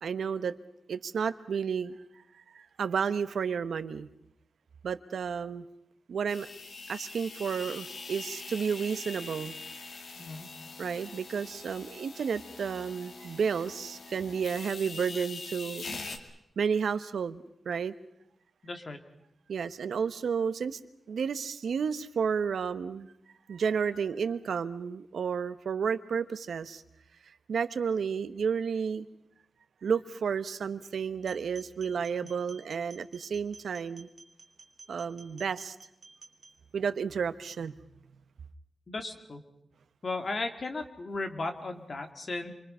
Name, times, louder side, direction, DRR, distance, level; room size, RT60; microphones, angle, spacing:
voice 1, 0.0-0.6 0.9-2.0 2.3-4.1 4.8-5.6 6.1-6.5 6.9-9.5 10.8-15.8 16.6-17.9 19.5-20.8 21.1-23.1 23.5-26.8 27.5-29.1 29.8-34.1 34.9-35.8 36.7-37.7, right 6 dB, 85° right, 12 dB, 1.0 m, -31 dB
sound 1, 6.3-16.2, left 4 dB, 65° left, 2.2 m, -43 dB
voice 2, 10.1-10.5 18.6-19.0 38.9-39.4 40.0-42.5, left 3 dB, 40° left, 6 dB, 2.2 m, -35 dB
sound 2, 31.2-36.5, right 3 dB, 35° right, 2.6 m, -53 dB
28.0 x 23.5 x 5.6 m, 0.79 s
wide cardioid pair, 155°, 0 cm